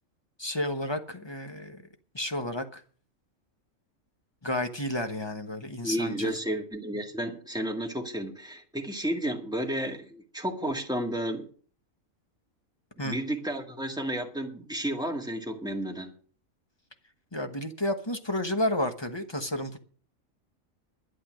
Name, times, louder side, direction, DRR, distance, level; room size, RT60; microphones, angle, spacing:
voice 1, 0.4-1.8 2.1-2.8 4.4-6.3 13.0-13.2 17.3-19.8, left 1 dB, 20° left, 1.1 m, -31 dB
voice 2, 5.8-11.5 13.0-16.1, right 1 dB, 5° right, 1.9 m, -32 dB
12.0 x 9.9 x 6.2 m
omnidirectional pair, 1.4 m